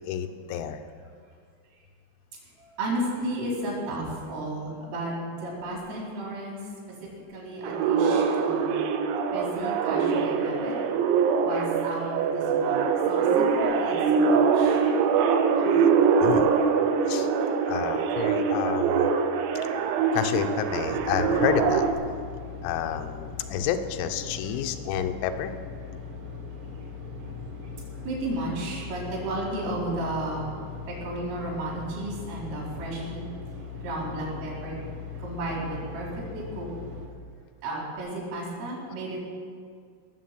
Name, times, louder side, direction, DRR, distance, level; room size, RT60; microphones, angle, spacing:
voice 1, 0.1-0.8 16.2-16.5 17.1-17.3 17.7-19.1 20.1-21.9 22.6-25.5, left 9 dB, 90° left, 7 dB, 3.6 m, -29 dB
voice 2, 2.6-6.6 7.3-8.7 9.3-10.8 11.4-12.8 13.1-14.8 15.6-15.7 28.0-30.4 30.9-33.3 33.8-34.8 35.2-36.1 36.3-36.7 37.6-39.2, right 1 dB, 75° right, -4 dB, 6.7 m, -33 dB
sound 1, 7.6-21.9, right 5 dB, 90° right, 3.7 m, -23 dB
sound 2, 20.7-37.1, left 5 dB, 55° right, 1.4 m, -40 dB
19.0 x 7.4 x 7.7 m, 2.1 s
omnidirectional pair, 5.9 m